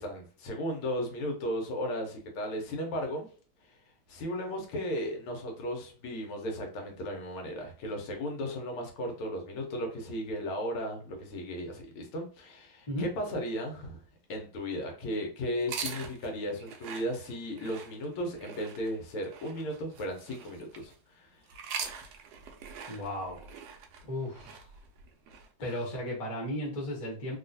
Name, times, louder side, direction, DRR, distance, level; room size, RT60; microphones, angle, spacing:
voice 1, 0.0-3.3 4.1-14.0 14.3-21.3 25.6-25.8, equal, 85° left, 2 dB, 1.7 m, -35 dB
sound 1, 15.6-20.9 21.5-25.5, right 6 dB, 85° right, 0.8 m, -43 dB
voice 2, 22.9-23.5 24.1-24.6 25.6-27.4, left 1 dB, 25° left, -3 dB, 0.8 m, -35 dB
3.6 x 2.4 x 2.6 m, 0.39 s
omnidirectional pair, 2.3 m